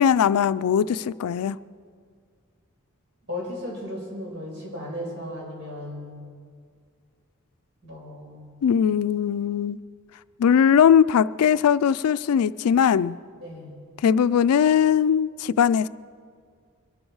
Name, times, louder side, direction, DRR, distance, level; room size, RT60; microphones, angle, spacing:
voice 1, 0.0-1.6 8.6-9.8 10.4-13.2 14.0-15.9, left 8 dB, 85° left, 0.3 m, -20 dB
voice 2, 3.3-6.2 7.8-8.6 13.4-13.7, left 1 dB, 55° right, 5.0 m, -35 dB
23.0 x 12.0 x 4.7 m
head